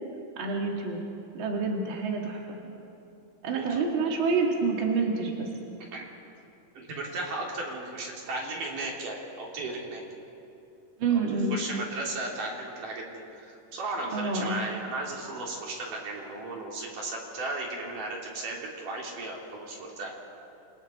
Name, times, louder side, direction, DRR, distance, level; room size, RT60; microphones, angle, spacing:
voice 1, 0.4-1.0 1.3-2.6 3.4-5.5 11.0-11.6 14.1-14.6, right 4 dB, 40° right, 0 dB, 2.8 m, -28 dB
voice 2, 3.5-3.9 5.9-6.0 6.7-10.0 11.5-13.1 13.4-20.1, right 2 dB, 70° right, -2 dB, 4.7 m, -35 dB
28.0 x 28.0 x 4.5 m, 2.7 s
omnidirectional pair, 3.8 m